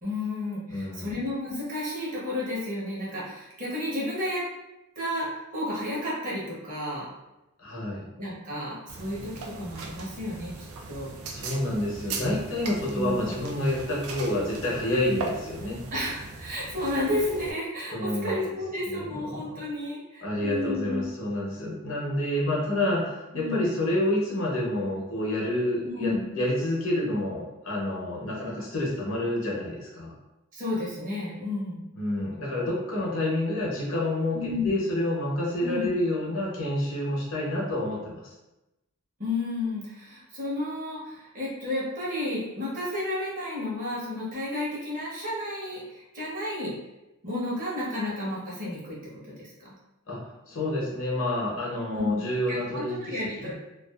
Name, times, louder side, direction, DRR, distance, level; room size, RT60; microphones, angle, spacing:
voice 1, 0.0-4.4 5.0-7.1 8.2-10.5 10.9-11.1 12.9-13.2 15.9-21.1 23.3-23.7 25.8-26.3 30.5-31.9 34.3-34.8 35.6-35.9 39.2-46.7 47.2-49.0 49.2-49.7 51.9-52.2 52.5-53.5, left 1 dB, 40° right, -6 dB, 0.8 m, -32 dB
voice 2, 0.7-1.2 7.6-8.0 11.3-15.8 17.9-18.6 18.9-19.6 20.2-30.1 31.9-38.3 50.1-50.2 50.5-53.5, left 1 dB, 65° left, -4 dB, 0.7 m, -29 dB
sound 1, 8.9-17.5, right 3 dB, 75° right, 0.3 m, -39 dB
2.4 x 2.3 x 2.3 m, 0.97 s
head